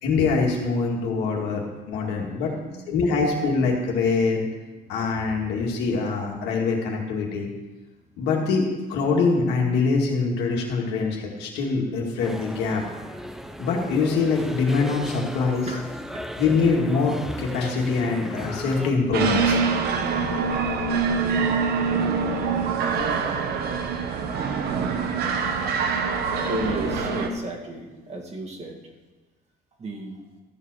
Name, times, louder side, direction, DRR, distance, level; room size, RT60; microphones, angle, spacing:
voice 1, 0.0-2.5 2.9-4.5 4.9-7.5 8.2-8.6 8.9-12.8 13.6-15.7 16.4-19.6, left 4 dB, 85° left, -1 dB, 2.3 m, -24 dB
voice 2, 0.9-1.6 2.0-3.3 4.7-5.3 15.7-15.9 16.1-16.3 24.9-25.2 26.0-26.1 26.4-28.9 29.8-30.2, right 2 dB, 40° right, 0 dB, 2.1 m, -36 dB
sound 1, 12.2-18.9, equal, ahead, 0.6 m, -36 dB
sound 2, 19.1-27.3, right 5 dB, 70° right, 1.2 m, -24 dB
13.5 x 5.0 x 6.4 m, 1.2 s
cardioid pair, 110°, 17 cm